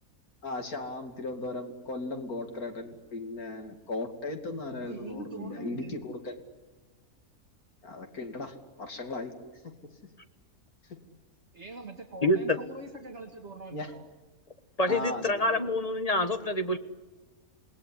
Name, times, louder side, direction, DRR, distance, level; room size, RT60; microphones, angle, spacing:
voice 1, 0.4-6.4 7.8-9.3 9.6-9.9 10.9-11.0 13.7-13.9 14.9-15.8, left 2 dB, 80° left, 5 dB, 3.2 m, -37 dB
voice 2, 4.8-6.1 11.5-14.1, right 2 dB, 50° right, 3 dB, 2.2 m, -43 dB
voice 3, 12.2-12.6 14.8-16.8, left 1 dB, 25° left, 9 dB, 1.4 m, -26 dB
27.5 x 19.5 x 9.9 m, 1.3 s
omnidirectional pair, 1.5 m